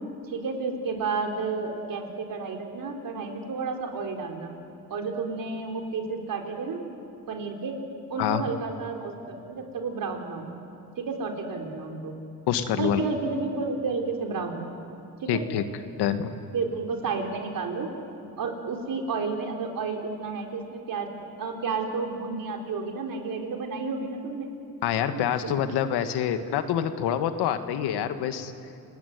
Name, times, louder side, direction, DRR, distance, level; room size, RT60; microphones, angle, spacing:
voice 1, 0.3-4.5 4.9-6.8 7.3-7.8 8.1-10.5 11.0-12.1 12.8-14.7 15.2-15.4 16.5-17.9 18.4-21.1 21.4-24.5 25.1-25.5, right 4 dB, 60° right, 2 dB, 4.1 m, -31 dB
voice 2, 12.5-13.0 15.3-15.6 16.0-16.3 24.8-28.5, left 9 dB, 90° left, 9 dB, 1.8 m, -26 dB
29.5 x 20.0 x 9.5 m, 2.6 s
cardioid pair, 105°, 38 cm